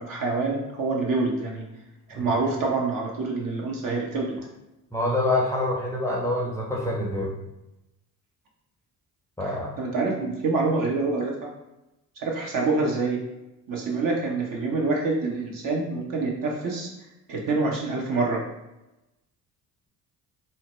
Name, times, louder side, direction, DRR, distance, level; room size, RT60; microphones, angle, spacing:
voice 1, 0.0-1.6 2.1-4.3 9.4-11.5 12.2-13.2 13.7-16.9 17.3-18.4, right 3 dB, 45° right, -1 dB, 0.8 m, -26 dB
voice 2, 4.9-7.3 9.4-9.7, left 2 dB, 5° left, -4 dB, 0.7 m, -26 dB
2.8 x 2.1 x 3.0 m, 0.95 s
hypercardioid pair, 50°, 46 cm